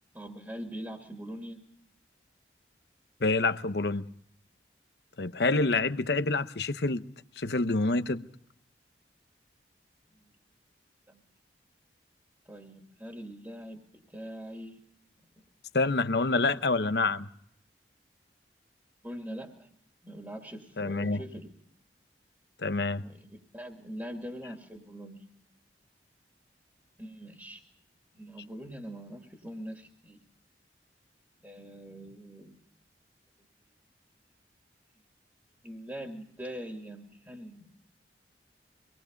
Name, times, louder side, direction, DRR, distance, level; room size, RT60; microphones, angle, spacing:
voice 1, 0.1-1.6 10.2-10.3 11.1-11.2 12.4-14.8 19.0-19.7 20.0-21.5 23.0-25.2 27.0-27.6 28.1-30.3 31.4-32.5 35.6-37.7, equal, 10° right, 2.5 m, -43 dB
voice 2, 3.2-4.0 5.2-7.0 7.4-8.3 15.7-17.3 20.8-21.2 22.6-23.0, left 3 dB, 65° left, 0.9 m, -27 dB
25.5 x 20.0 x 5.2 m
head